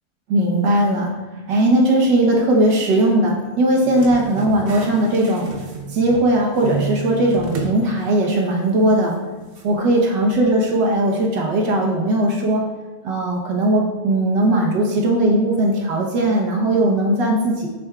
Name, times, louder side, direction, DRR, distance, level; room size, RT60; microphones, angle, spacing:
voice 1, 0.3-1.1 1.5-5.5 5.9-9.1 9.6-12.6 13.0-17.7, right 1 dB, 80° right, 0 dB, 1.8 m, -18 dB
sound 1, 3.8-6.3 6.6-7.8 8.2-8.3 9.6-9.7, right 4 dB, 55° right, 0.6 m, -30 dB
6.9 x 6.4 x 2.4 m, 1.2 s
omnidirectional pair, 1.9 m